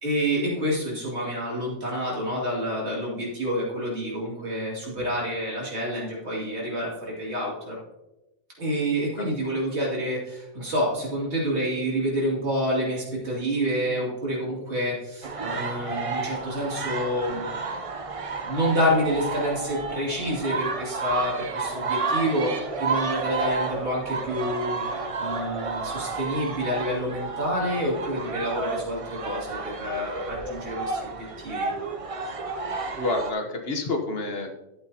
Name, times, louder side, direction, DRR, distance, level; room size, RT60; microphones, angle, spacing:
voice 1, 0.0-7.8 8.6-17.6 18.4-24.8 25.2-31.7, equal, 70° right, -4 dB, 2.9 m, -28 dB
sound 1, 15.2-33.3, right 4 dB, 40° right, 0.5 m, -31 dB
voice 2, 33.0-34.6, left 2 dB, 60° left, 3 dB, 1.2 m, -29 dB
11.5 x 8.3 x 2.8 m, 0.98 s
omnidirectional pair, 1.2 m